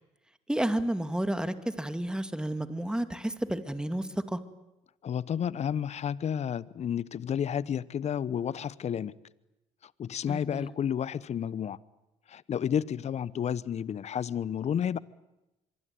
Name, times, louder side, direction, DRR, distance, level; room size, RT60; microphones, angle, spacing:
voice 1, 0.5-4.4 10.3-10.7, right 1 dB, 5° right, 2.2 m, -31 dB
voice 2, 5.0-9.1 10.0-11.8 12.3-15.0, left 8 dB, 50° left, 1.0 m, -31 dB
25.0 x 23.5 x 9.4 m
supercardioid pair, 65°, 15 cm